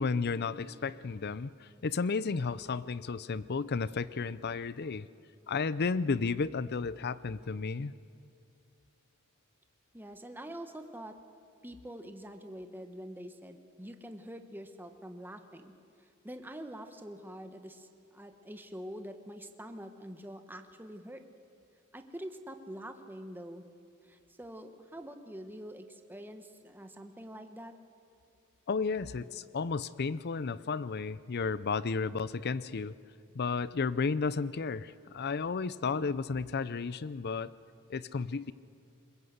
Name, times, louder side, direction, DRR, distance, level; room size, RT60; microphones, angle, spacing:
voice 1, 0.0-5.1 5.5-7.9 28.7-33.0 33.3-37.5 37.9-38.5, left 4 dB, 50° left, 17 dB, 0.5 m, -33 dB
voice 2, 9.9-11.2 11.6-15.7 16.2-21.2 21.9-23.7 24.0-27.7, equal, 10° right, 7 dB, 1.1 m, -45 dB
22.0 x 21.0 x 8.1 m, 2.5 s
head